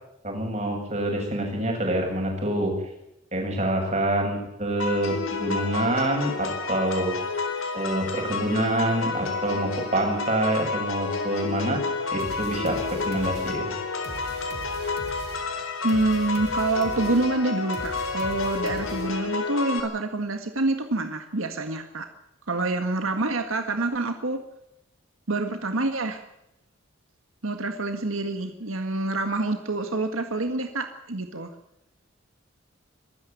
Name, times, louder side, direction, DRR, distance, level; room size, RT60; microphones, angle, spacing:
voice 1, 0.2-2.7 3.3-7.1 7.7-11.8 12.1-12.8 13.1-13.7, right 1 dB, 35° right, 2 dB, 7.4 m, -26 dB
sound 1, 4.8-19.8, left 4 dB, 85° left, 3.9 m, -30 dB
sound 2, 12.2-19.4, right 1 dB, 50° right, 3.2 m, -41 dB
voice 2, 15.8-22.1 22.5-24.4 25.3-26.2 27.4-31.5, right 2 dB, 80° right, 6 dB, 1.7 m, -27 dB
23.5 x 13.5 x 9.4 m, 0.86 s
head